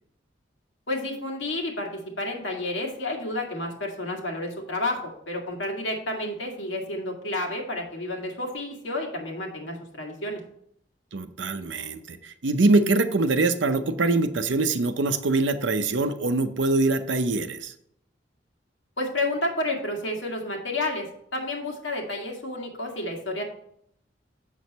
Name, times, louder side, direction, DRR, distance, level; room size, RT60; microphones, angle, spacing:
voice 1, 0.9-5.0 5.3-10.4 19.0-23.4, left 1 dB, 80° left, 1 dB, 2.0 m, -30 dB
voice 2, 11.1-17.7, right 2 dB, 75° right, 10 dB, 0.7 m, -23 dB
7.4 x 6.3 x 4.1 m, 0.71 s
head